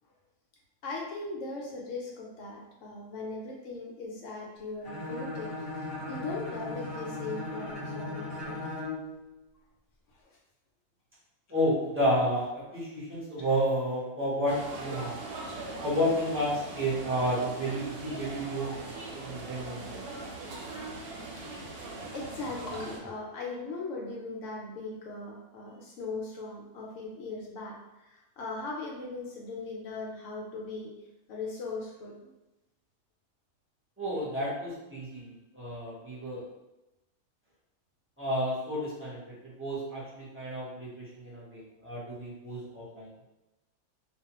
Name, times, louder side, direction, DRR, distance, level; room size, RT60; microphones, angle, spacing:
voice 1, 0.8-8.6 10.1-10.2 21.4-21.8 22.1-30.9 31.3-32.3, left 3 dB, 65° left, -2 dB, 0.8 m, -39 dB
Bowed string instrument, 4.8-9.1, left 2 dB, 20° left, 0.8 m, -37 dB
voice 2, 11.5-15.2 15.8-20.0 21.1-21.7 34.0-36.4 38.2-43.1, equal, 15° right, -9 dB, 0.6 m, -31 dB
sound 1, 14.5-23.0, right 2 dB, 85° right, 1.1 m, -40 dB
2.4 x 2.2 x 2.8 m, 0.99 s
omnidirectional pair, 1.6 m